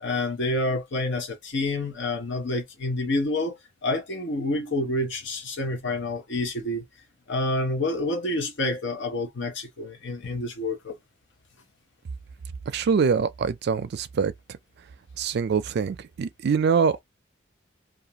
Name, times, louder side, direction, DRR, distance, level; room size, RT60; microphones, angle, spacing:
voice 1, 0.0-3.5 3.8-6.8 7.3-11.0, left 2 dB, 65° left, 0.8 m, -28 dB
voice 2, 12.7-14.3 15.2-17.0, right 6 dB, 60° right, 0.4 m, -24 dB
2.4 x 2.4 x 2.8 m
head